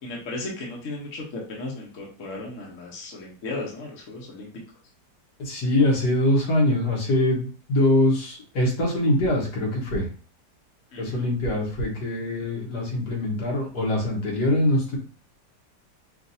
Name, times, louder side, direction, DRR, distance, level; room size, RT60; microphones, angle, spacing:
voice 1, 0.0-4.5 10.9-11.2, left 2 dB, 50° left, -2 dB, 1.3 m, -35 dB
voice 2, 5.4-10.1 11.0-15.0, left 1 dB, 70° left, -2 dB, 1.8 m, -23 dB
5.6 x 2.6 x 2.7 m, 0.40 s
omnidirectional pair, 1.8 m